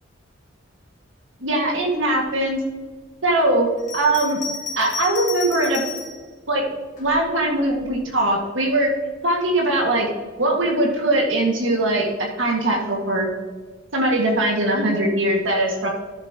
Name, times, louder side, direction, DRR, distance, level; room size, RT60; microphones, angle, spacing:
voice 1, 1.4-2.6 3.2-4.4 4.8-5.8 6.5-6.6 7.0-8.9 9.2-10.1 10.4-13.3 13.9-15.9, right 1 dB, 80° right, -1 dB, 2.0 m, -21 dB
Bell, 3.8-6.2 7.0-7.9, left 5 dB, 40° left, 1.7 m, -32 dB
13.5 x 7.4 x 3.0 m, 1.4 s
head